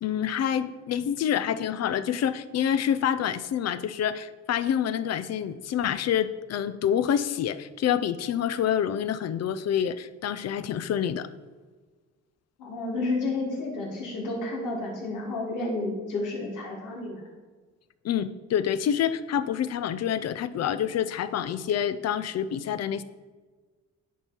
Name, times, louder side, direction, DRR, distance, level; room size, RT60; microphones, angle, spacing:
voice 1, 0.0-11.3 18.0-23.0, left 9 dB, 60° left, 14 dB, 0.5 m, -27 dB
voice 2, 12.6-17.2, left 2 dB, 90° left, -3 dB, 2.6 m, -31 dB
10.0 x 4.6 x 4.4 m, 1.4 s
cardioid pair, 90°, 30 cm